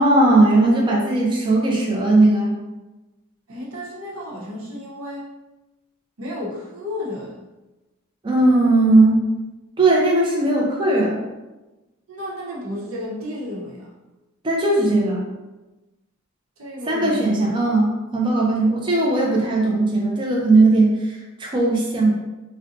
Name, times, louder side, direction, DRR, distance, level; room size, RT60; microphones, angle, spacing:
voice 1, 0.0-2.6 8.2-9.2 9.8-11.2 14.4-15.2 16.9-22.1, right 2 dB, 25° right, -3 dB, 0.4 m, -18 dB
voice 2, 3.5-5.3 6.2-7.4 12.1-13.9 16.6-17.3, left 1 dB, 85° right, -4 dB, 0.9 m, -32 dB
3.9 x 2.1 x 2.6 m, 1.1 s
head